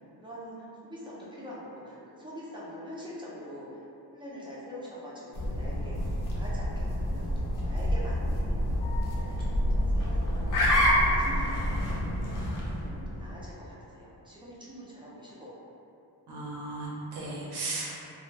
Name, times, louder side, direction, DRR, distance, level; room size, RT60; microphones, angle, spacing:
voice 1, 0.2-3.8 4.1-8.7 9.1-10.5 10.8-11.9 12.7-15.5, equal, 15° right, -7 dB, 0.4 m, -44 dB
sound 1, 5.3-13.4, equal, 55° left, 0.6 m, -28 dB
voice 2, 16.3-18.1, right 2 dB, 75° right, -5 dB, 0.7 m, -36 dB
2.2 x 2.1 x 3.1 m, 2.7 s
wide cardioid pair, 125°, 39 cm